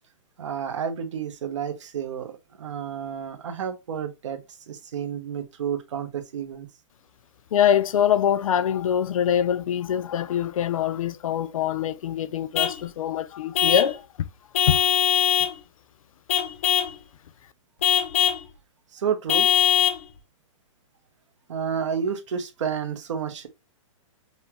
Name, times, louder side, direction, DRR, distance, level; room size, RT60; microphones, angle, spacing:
voice 1, 0.4-2.3 2.6-4.4 4.7-6.7 18.9-19.5 21.5-23.5, right 7 dB, 65° right, 0.9 m, -30 dB
voice 2, 7.5-14.3 14.7-14.8, left 9 dB, 85° left, 0.5 m, -24 dB
Vehicle horn car horn honking / Truck, 12.5-12.8 13.5-14.0 14.5-15.6 16.3-17.0 17.8-18.4 19.3-20.0, left 10 dB, 25° left, 0.3 m, -21 dB
5.5 x 2.2 x 2.8 m
hypercardioid pair, 180°, 17 cm